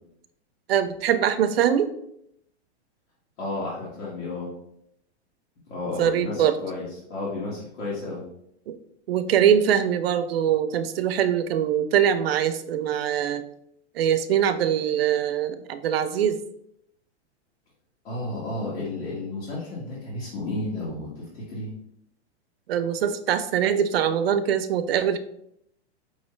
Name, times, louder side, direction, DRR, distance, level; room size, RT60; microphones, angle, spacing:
voice 1, 0.7-1.9 6.0-6.6 9.1-13.4 14.0-16.4 22.7-25.2, right 9 dB, 60° right, 10 dB, 0.5 m, -23 dB
voice 2, 3.4-4.5 5.7-8.2 18.0-21.7, left 2 dB, 75° left, -7 dB, 1.9 m, -32 dB
5.4 x 3.2 x 3.1 m, 0.75 s
supercardioid pair, 180°, 34 cm